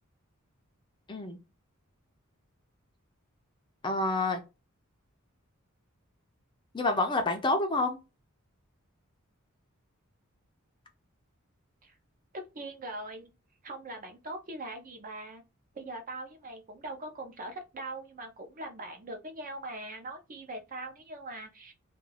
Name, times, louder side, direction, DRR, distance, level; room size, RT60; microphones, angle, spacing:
voice 1, 3.8-4.4 6.7-8.0, left 2 dB, 20° left, 0.4 m, -28 dB
voice 2, 12.5-13.3 13.6-15.4 15.7-21.7, right 2 dB, 40° right, 0.5 m, -41 dB
2.3 x 2.3 x 3.1 m
head